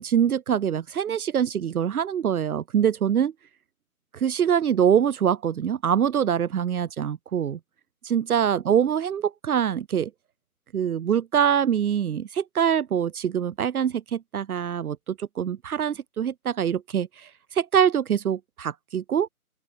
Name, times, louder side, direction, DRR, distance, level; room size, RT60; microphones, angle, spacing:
voice 1, 0.0-3.3 4.1-7.6 8.0-10.1 10.7-19.3, right 8 dB, 80° right, 0.6 m, -24 dB
open air
figure-of-eight pair, 160°, 44 cm